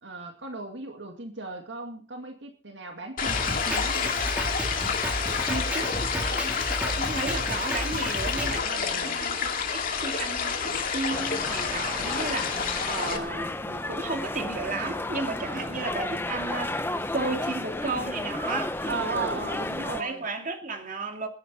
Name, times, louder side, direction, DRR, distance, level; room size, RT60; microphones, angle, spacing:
voice 1, 0.0-4.1 8.8-9.2 15.4-15.9 18.8-20.2, right 4 dB, 65° right, 2.2 m, -37 dB
sound 1, 3.2-13.2, left 6 dB, 45° left, 2.3 m, -29 dB
Drum kit, 3.3-8.6, equal, 5° right, 3.2 m, -32 dB
voice 2, 5.5-6.5 6.8-19.1 20.0-21.3, right 3 dB, 45° right, 2.6 m, -34 dB
sound 2, 11.1-20.0, left 2 dB, 10° left, 1.0 m, -33 dB
20.5 x 10.0 x 4.3 m
head